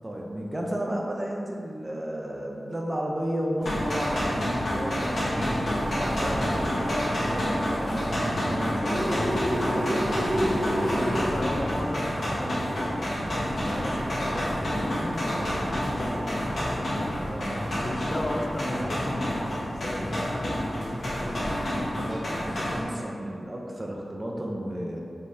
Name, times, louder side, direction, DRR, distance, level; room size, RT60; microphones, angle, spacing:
voice 1, 0.0-5.6 5.9-9.5 9.9-11.0 17.3-17.6 21.8-25.0, right 1 dB, 25° right, -1 dB, 0.6 m, -33 dB
sound 1, 3.6-22.8, equal, 70° left, 1.1 m, -28 dB
sound 2, 4.4-19.5, equal, 5° right, 1.3 m, -44 dB
sound 3, 8.8-11.2, equal, 70° right, 1.1 m, -28 dB
voice 2, 9.5-17.1 17.8-22.0, left 1 dB, 35° left, 2 dB, 0.4 m, -36 dB
5.3 x 3.3 x 2.7 m, 2.4 s
wide cardioid pair, 90°, 0 cm